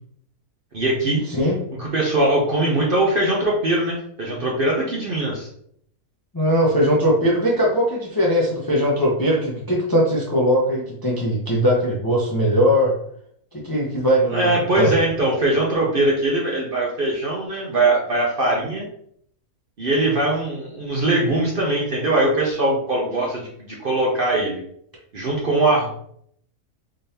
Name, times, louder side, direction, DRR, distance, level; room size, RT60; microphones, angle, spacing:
voice 1, 0.7-1.2 1.7-5.5 14.3-18.8 19.8-24.6 25.1-25.9, right 2 dB, 50° right, -3 dB, 0.7 m, -21 dB
voice 2, 6.3-12.9 13.5-14.9, equal, 25° left, -4 dB, 0.5 m, -20 dB
3.8 x 3.3 x 2.8 m, 0.67 s
omnidirectional pair, 1.6 m